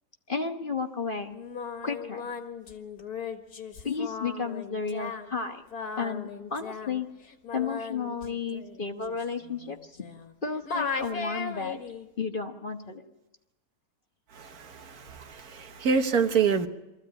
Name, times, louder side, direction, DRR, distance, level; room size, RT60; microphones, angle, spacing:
voice 1, 0.3-1.3 1.8-2.3 3.8-5.6 6.0-7.1 7.5-10.1 10.4-11.8 12.2-13.1, left 5 dB, 35° left, 1.3 m, -33 dB
Singing, 1.3-10.4 10.7-12.1, left 5 dB, 75° left, 2.2 m, -37 dB
voice 2, 14.3-16.7, right 6 dB, 65° right, 1.6 m, -27 dB
24.0 x 14.5 x 8.8 m
omnidirectional pair, 1.7 m